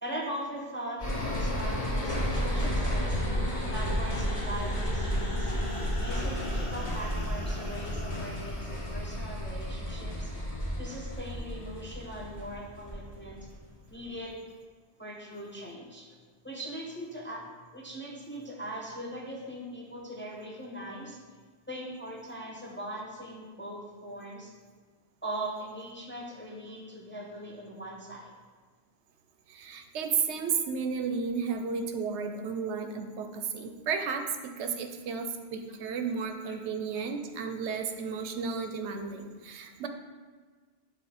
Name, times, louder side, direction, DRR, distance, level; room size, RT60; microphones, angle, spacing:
voice 1, 0.0-3.3 3.7-5.5 6.0-10.3 10.8-13.4 13.9-14.4 15.0-16.1 16.4-17.4 17.7-21.2 21.7-24.5 25.2-28.3 36.5-36.6, right 1 dB, 15° left, -2 dB, 0.6 m, -40 dB
sound 1, 1.0-13.5 13.9-14.0, equal, 30° left, 1.8 m, -32 dB
voice 2, 29.5-34.2 34.6-39.9, right 5 dB, 85° right, 6 dB, 0.9 m, -33 dB
7.0 x 3.1 x 4.9 m, 1.5 s
omnidirectional pair, 1.1 m